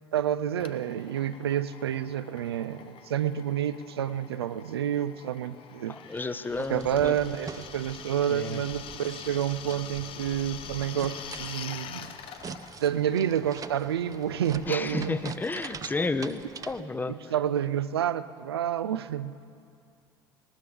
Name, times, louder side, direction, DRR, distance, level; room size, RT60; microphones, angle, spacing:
voice 1, 0.1-6.0 6.7-12.1 12.8-15.3 17.1-19.4, right 10 dB, 75° right, 15 dB, 0.5 m, -29 dB
Drill, 0.6-16.9, left 9 dB, 45° left, 0.7 m, -46 dB
voice 2, 5.9-7.2 8.3-8.6 14.7-17.3, left 3 dB, 15° left, 13 dB, 0.7 m, -32 dB
sound 1, 6.5-16.8, right 6 dB, 25° right, 0.6 m, -44 dB
19.5 x 19.0 x 3.5 m, 2.4 s
figure-of-eight pair, 60°, 13 cm